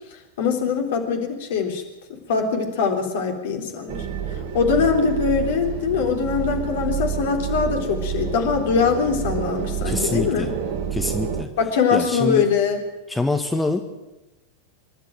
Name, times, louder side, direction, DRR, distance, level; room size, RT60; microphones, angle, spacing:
voice 1, 0.4-1.8 2.1-4.0 4.5-10.5 11.6-12.8, left 6 dB, 55° left, 4 dB, 3.7 m, -22 dB
sound 1, 3.9-11.4, right 7 dB, 45° right, 1.9 m, -28 dB
voice 2, 9.8-10.5 10.9-11.5 11.9-12.5 13.1-13.8, left 2 dB, 5° left, 5 dB, 1.6 m, -25 dB
25.5 x 12.5 x 9.1 m, 1.0 s
figure-of-eight pair, 90°, 0 cm